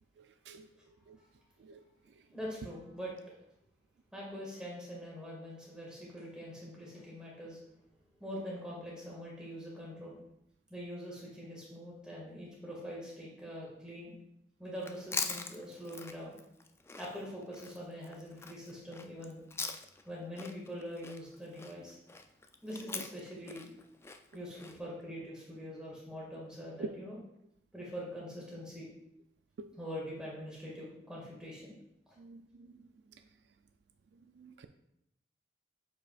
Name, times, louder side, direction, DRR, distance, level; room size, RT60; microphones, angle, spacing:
voice 1, 0.2-0.7 1.1-1.2 1.6-1.8 26.8-26.9 29.6-29.7 32.2-32.4 34.4-34.7, right 4 dB, 70° right, 9 dB, 0.4 m, -44 dB
voice 2, 2.3-3.1 4.1-7.6 8.2-10.2 10.7-14.1 14.6-16.4 17.0-19.4 20.1-22.0 22.6-23.7 24.3-27.2 27.7-28.9 29.8-31.8, equal, 5° right, -5 dB, 1.9 m, -43 dB
Chewing mastication, 14.8-20.1 20.4-24.8, left 4 dB, 15° left, 0.3 m, -42 dB
7.9 x 4.8 x 2.4 m, 0.80 s
head